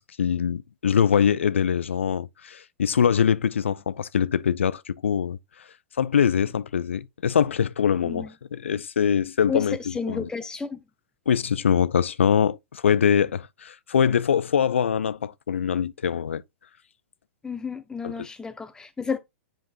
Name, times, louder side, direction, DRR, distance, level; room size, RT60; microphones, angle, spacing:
voice 1, 0.2-5.4 6.0-9.8 10.1-10.2 11.3-16.4 18.0-18.1, left 7 dB, 70° left, 0.4 m, -23 dB
voice 2, 8.0-8.3 9.5-10.8 17.4-19.2, left 5 dB, 10° left, 0.8 m, -32 dB
7.6 x 5.0 x 2.5 m
figure-of-eight pair, 105°, 7 cm